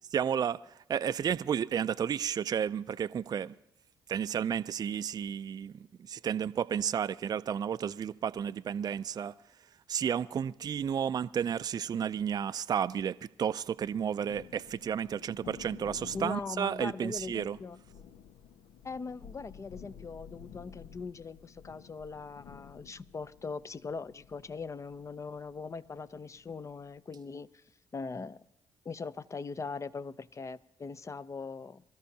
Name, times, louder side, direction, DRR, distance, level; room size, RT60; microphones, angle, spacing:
voice 1, 0.1-3.5 4.1-9.3 9.9-17.6, right 8 dB, 45° right, 0.4 m, -32 dB
Thunder, 13.8-27.0, left 8 dB, 75° left, 0.5 m, -52 dB
voice 2, 16.1-17.8 18.8-27.6 27.9-28.4 28.8-31.8, left 4 dB, 35° left, 0.6 m, -41 dB
24.5 x 13.0 x 2.8 m
hypercardioid pair, 50°, 9 cm